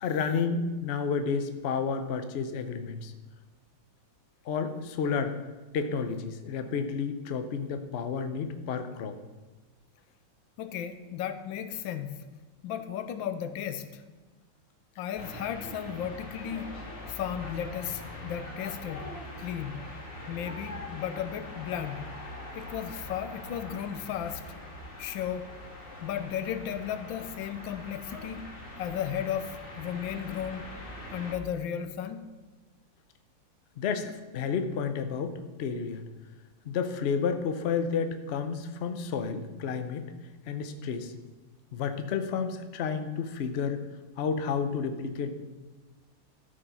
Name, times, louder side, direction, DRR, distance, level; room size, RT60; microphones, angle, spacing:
voice 1, 0.0-3.1 4.5-5.4 5.7-9.1 33.8-35.3 35.6-36.0 36.7-40.0 40.5-41.1 41.7-43.8 44.2-45.3, left 6 dB, 65° left, 8 dB, 0.6 m, -31 dB
voice 2, 10.6-12.2 12.6-14.0 15.0-16.7 17.1-19.1 19.4-19.8 20.3-22.0 22.5-24.4 25.0-25.5 26.0-30.7 31.1-32.3, left 9 dB, 90° left, 11 dB, 1.4 m, -35 dB
sound 1, 15.2-31.3, left 1 dB, 40° left, 1.8 m, -43 dB
13.0 x 4.9 x 5.5 m, 1.2 s
omnidirectional pair, 2.1 m